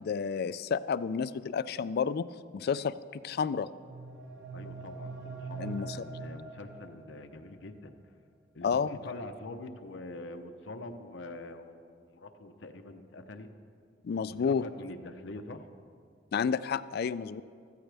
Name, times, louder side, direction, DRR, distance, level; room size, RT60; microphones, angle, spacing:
voice 1, 0.0-2.3 2.5-3.7 5.6-6.0 8.6-9.0 14.0-14.6 16.3-17.4, left 6 dB, 55° left, 16 dB, 0.3 m, -30 dB
sound 1, 3.7-7.4, right 3 dB, 85° right, 1.9 m, -43 dB
voice 2, 4.5-7.9 8.5-13.5 14.3-15.7, left 2 dB, 75° left, 6 dB, 0.8 m, -45 dB
15.0 x 14.0 x 3.4 m, 2.2 s
head